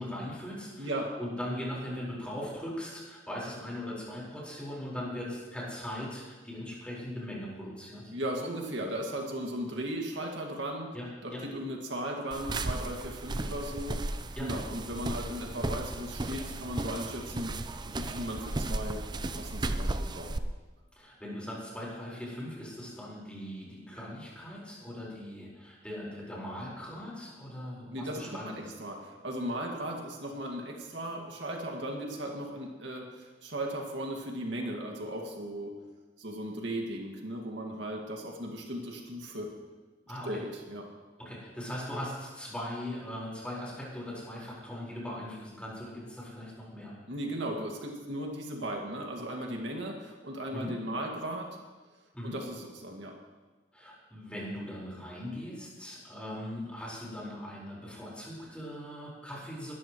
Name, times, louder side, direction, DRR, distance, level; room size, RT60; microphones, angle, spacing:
voice 1, 0.0-0.9 1.2-8.1 10.9-11.4 14.3-14.5 21.0-28.7 40.1-40.4 41.2-46.9 50.5-50.7 52.1-52.4 53.7-59.7, left 1 dB, 5° left, -5 dB, 4.7 m, -40 dB
voice 2, 8.1-10.9 11.2-17.6 17.9-19.0 19.3-20.4 27.9-35.7 36.2-39.5 40.3-40.9 47.1-51.5 52.2-53.1, right 1 dB, 70° right, 0 dB, 2.1 m, -37 dB
sound 1, 12.3-20.4, right 2 dB, 25° right, 0.5 m, -35 dB
21.0 x 13.0 x 3.2 m, 1.3 s
head